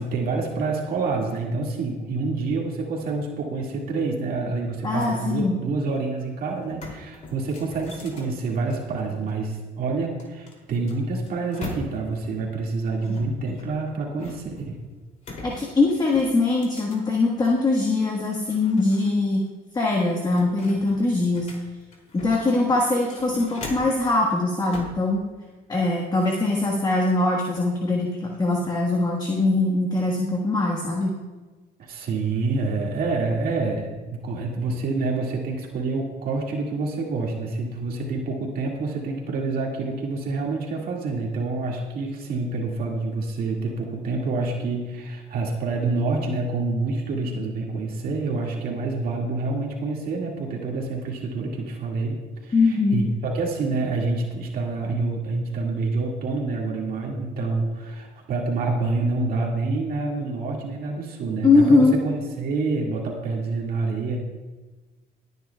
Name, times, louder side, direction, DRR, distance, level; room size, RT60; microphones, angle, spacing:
voice 1, 0.0-14.8 31.8-64.2, right 3 dB, 60° right, -1 dB, 2.0 m, -27 dB
voice 2, 4.8-5.6 15.4-19.4 19.7-21.5 22.1-25.2 25.7-31.2 52.5-53.0 61.4-62.0, left 3 dB, 25° left, -1 dB, 1.4 m, -22 dB
sound 1, 6.1-6.2 6.6-9.3 10.2-12.2 13.0-14.6 15.2-17.6 18.0-19.1 19.4-19.5 19.9-22.5 22.9-24.1 24.7-25.0, left 2 dB, 45° left, 2.7 m, -40 dB
21.0 x 9.3 x 2.3 m, 1.2 s
cardioid pair, 110°, 17 cm